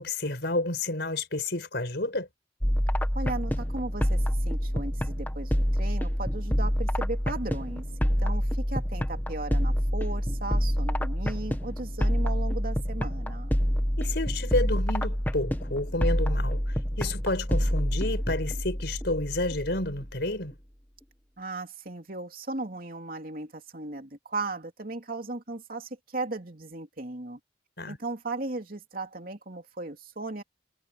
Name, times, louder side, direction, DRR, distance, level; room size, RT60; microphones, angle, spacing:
voice 1, 0.0-2.3 14.0-16.6 17.0-20.5 27.8-28.0, left 2 dB, 65° left, 5.1 m, -30 dB
sound 1, 2.6-20.2, equal, 10° left, 1.4 m, -27 dB
voice 2, 3.1-13.5 21.4-27.4 27.9-30.4, right 2 dB, 50° right, 3.0 m, -36 dB
head